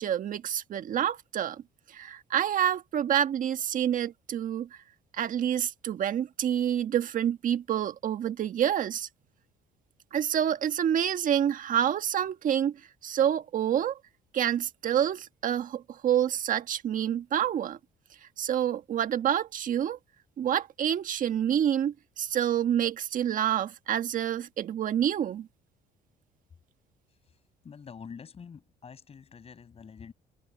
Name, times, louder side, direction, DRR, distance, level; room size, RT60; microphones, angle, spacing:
voice 1, 0.0-1.6 1.9-4.8 5.1-9.1 10.1-14.0 14.3-17.8 18.4-20.0 20.4-25.5, right 10 dB, 50° right, 1.5 m, -28 dB
voice 2, 27.6-30.1, left 6 dB, 35° left, 5.7 m, -46 dB
cardioid pair, 110°, 17 cm